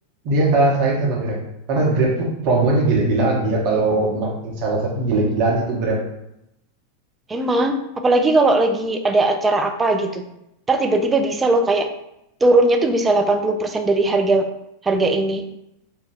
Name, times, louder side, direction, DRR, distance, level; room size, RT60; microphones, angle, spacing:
voice 1, 0.2-1.4 1.7-6.0, right 2 dB, 45° right, -2 dB, 0.8 m, -20 dB
voice 2, 7.3-10.2 10.7-11.9 12.4-14.5 14.8-15.4, right 2 dB, 15° right, 5 dB, 0.3 m, -18 dB
2.6 x 2.2 x 3.4 m, 0.84 s
figure-of-eight pair, 90°, 0 cm